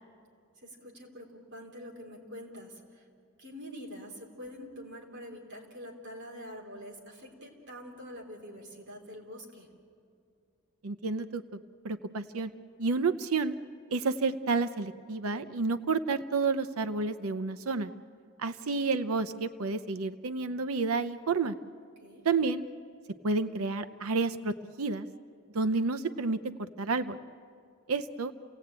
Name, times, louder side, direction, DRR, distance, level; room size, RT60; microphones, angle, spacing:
voice 1, 0.6-3.0 3.4-9.7 22.0-22.3, equal, 55° right, 1 dB, 3.4 m, -45 dB
voice 2, 10.8-11.6 11.8-12.5 12.8-13.5 13.9-17.9 18.4-21.5 22.2-22.6 23.2-25.1 25.5-27.2 27.9-28.3, right 4 dB, 75° right, 11 dB, 0.7 m, -30 dB
28.5 x 17.5 x 8.8 m, 2.3 s
head